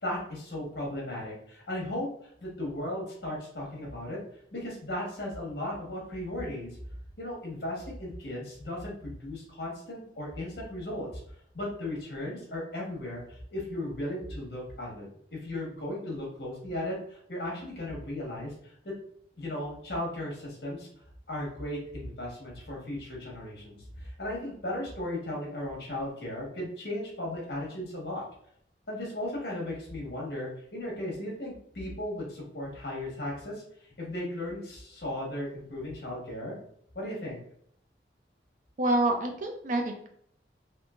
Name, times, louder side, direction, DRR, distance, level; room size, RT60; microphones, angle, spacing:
voice 1, 0.0-2.1 2.4-4.2 4.5-6.8 7.2-11.2 11.5-18.7 19.4-20.9 21.3-28.2 28.9-33.6 34.0-36.6 36.9-37.4, left 1 dB, 65° left, -3 dB, 1.3 m, -36 dB
voice 2, 38.8-40.1, right 1 dB, 45° right, 3 dB, 0.5 m, -27 dB
3.6 x 2.7 x 2.4 m, 0.67 s
head